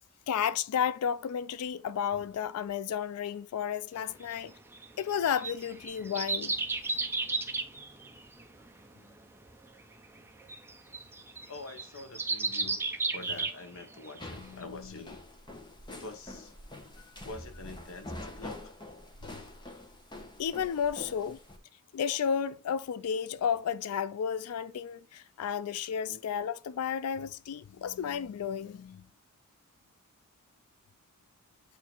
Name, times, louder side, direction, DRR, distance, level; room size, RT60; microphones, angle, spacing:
voice 1, 0.3-4.5 5.0-6.6 19.2-19.4 20.4-21.4 21.9-29.0, left 8 dB, 85° left, 0.4 m, -32 dB
sound 1, 4.2-14.2 14.6-14.7, right 3 dB, 10° right, 0.6 m, -34 dB
voice 2, 11.5-12.8 13.1-15.2 15.9-16.5 17.2-18.7 20.9-21.4 26.1-26.2, left 2 dB, 65° left, 1.0 m, -46 dB
sound 2, 14.2-21.6, left 1 dB, 20° left, 1.0 m, -46 dB
8.4 x 2.8 x 4.3 m
head